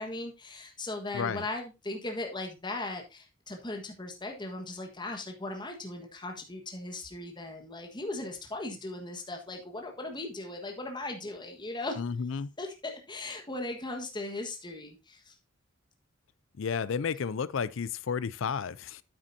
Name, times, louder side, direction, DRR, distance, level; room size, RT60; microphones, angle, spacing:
voice 1, 0.0-12.0 12.6-15.3, left 2 dB, 25° left, 1.4 m, -38 dB
voice 2, 1.1-1.5 12.0-12.5 16.6-19.0, left 6 dB, 70° left, 0.5 m, -32 dB
8.9 x 8.6 x 2.7 m
head